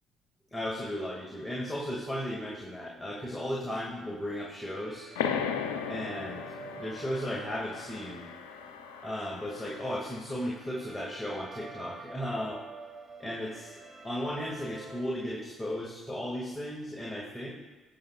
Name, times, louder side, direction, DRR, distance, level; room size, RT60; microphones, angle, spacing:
voice 1, 0.5-5.1 5.9-6.4 6.8-8.3 9.0-12.6 13.2-13.7 14.0-17.5, equal, 15° left, -4 dB, 2.2 m, -35 dB
sound 1, 4.3-15.0, right 3 dB, 10° right, 2.9 m, -49 dB
sound 2, 5.2-10.4, left 7 dB, 90° left, 0.6 m, -37 dB
21.0 x 7.6 x 2.4 m, 1.3 s
hypercardioid pair, 55°, 0 cm